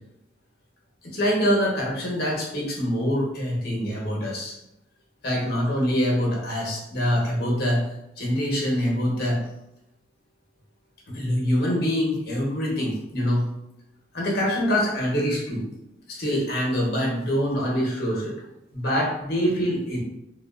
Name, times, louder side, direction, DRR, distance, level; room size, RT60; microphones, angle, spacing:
voice 1, 1.0-4.6 5.2-9.5 11.1-13.5 14.1-15.6 16.1-18.3 18.7-20.0, equal, 55° left, -2 dB, 0.9 m, -25 dB
3.6 x 2.2 x 2.3 m, 0.85 s
head